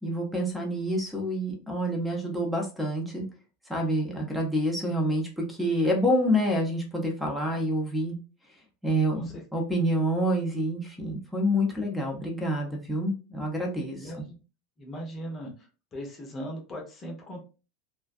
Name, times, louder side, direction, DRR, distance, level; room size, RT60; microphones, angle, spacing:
voice 1, 0.0-3.3 3.7-8.2 8.8-14.2, equal, 5° right, 2 dB, 0.8 m, -27 dB
voice 2, 13.9-14.4 14.8-15.5 15.9-17.4, equal, 30° left, 1 dB, 0.8 m, -38 dB
2.5 x 2.2 x 2.4 m, 0.33 s
figure-of-eight pair, 80°, 0 cm